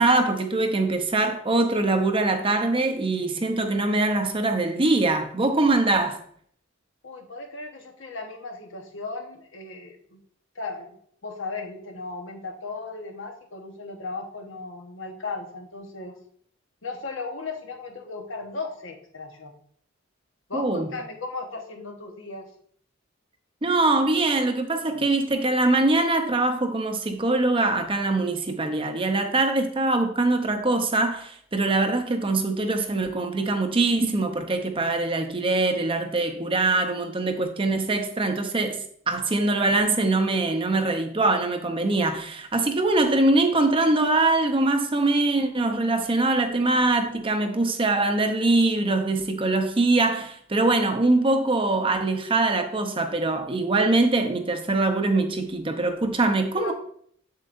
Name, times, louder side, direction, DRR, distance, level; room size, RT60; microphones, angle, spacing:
voice 1, 0.0-6.2 20.5-20.9 23.6-38.8 39.1-56.7, right 2 dB, 25° right, 0.7 m, -23 dB
voice 2, 7.0-10.2 10.5-11.0 11.2-16.1 16.8-19.5 20.5-22.5 56.6-56.7, left 3 dB, 65° left, 1.1 m, -36 dB
7.6 x 7.4 x 2.6 m
head